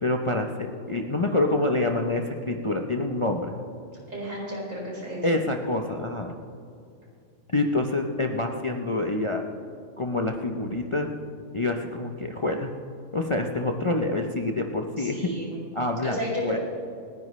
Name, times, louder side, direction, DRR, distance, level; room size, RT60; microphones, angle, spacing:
voice 1, 0.0-3.5 5.2-6.3 7.5-9.4 10.0-11.1 11.5-12.7 13.1-15.2 15.7-16.6, left 2 dB, 30° left, 3 dB, 0.7 m, -27 dB
voice 2, 4.1-5.3 15.0-15.6 16.0-16.6, equal, 75° right, -4 dB, 4.8 m, -32 dB
28.0 x 10.0 x 3.2 m, 2.4 s
omnidirectional pair, 1.4 m